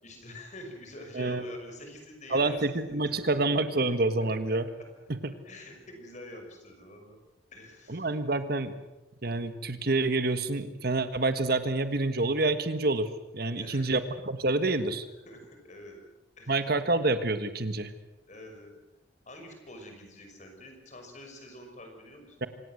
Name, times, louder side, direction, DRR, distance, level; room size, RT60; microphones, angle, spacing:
voice 1, 0.0-3.6 4.5-4.6 5.4-7.2 7.5-8.1 13.5-14.0 14.3-14.5 15.3-16.0 16.4-16.6 18.3-18.8 19.3-22.4, left 1 dB, 40° left, 3 dB, 6.1 m, -46 dB
voice 2, 2.3-4.7 5.1-5.2 7.9-8.7 9.2-13.1 13.3-15.0 16.5-17.9 22.4-22.5, right 2 dB, 55° right, 10 dB, 1.5 m, -27 dB
26.5 x 18.0 x 7.9 m, 0.99 s
head